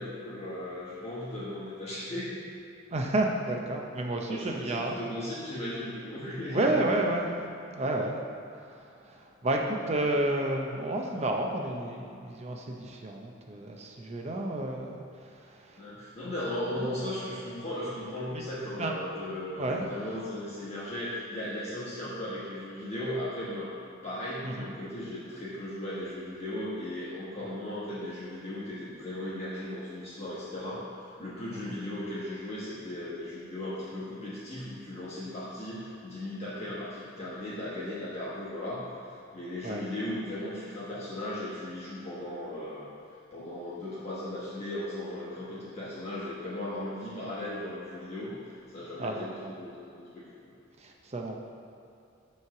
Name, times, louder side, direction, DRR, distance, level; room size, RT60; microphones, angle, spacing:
voice 1, 0.0-2.4 4.3-6.8 7.8-7.9 15.7-23.7 24.0-38.8 39.3-42.9 43.3-48.4 48.7-49.3 49.6-50.3, left 1 dB, 35° left, -10 dB, 1.2 m, -37 dB
voice 2, 2.9-5.0 6.5-7.3 7.7-8.2 8.8-15.0 15.4-15.8 16.8-16.9 18.3-18.4 18.8-18.9 19.6-19.9 24.4-24.7 27.4-27.5 31.5-31.7 39.6-39.8 49.0-49.6 50.8-51.4, right 1 dB, 35° right, 1 dB, 0.6 m, -31 dB
7.0 x 3.2 x 5.8 m, 2.6 s
head